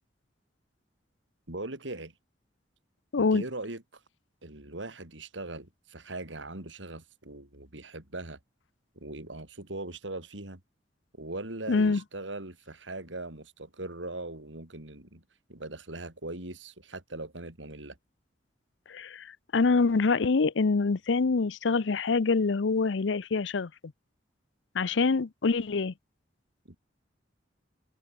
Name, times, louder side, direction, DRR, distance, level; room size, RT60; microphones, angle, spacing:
voice 1, 1.5-2.1 3.2-4.0 4.4-8.4 9.0-10.6 11.1-15.2 15.5-18.0 26.7-26.8, right 2 dB, 80° right, 3.8 m, -40 dB
voice 2, 11.7-12.0 18.9-23.7 24.7-25.9, left 4 dB, 75° left, 0.6 m, -25 dB
head